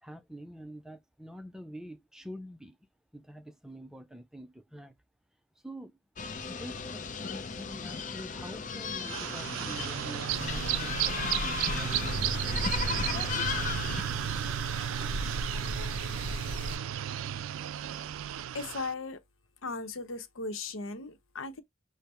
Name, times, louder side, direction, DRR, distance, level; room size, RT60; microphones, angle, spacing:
voice 1, 0.0-2.9 3.1-4.9 5.6-6.0 6.5-12.9, equal, 5° right, 0.4 m, -46 dB
sound 1, 6.2-14.0, left 5 dB, 40° left, 0.6 m, -36 dB
sound 2, 9.0-18.9, right 10 dB, 85° right, 0.3 m, -33 dB
sound 3, 10.3-16.8, left 1 dB, 60° left, 0.9 m, -38 dB
voice 2, 18.5-19.2 19.6-21.6, left 3 dB, 90° left, 0.8 m, -37 dB
5.3 x 2.1 x 4.2 m
head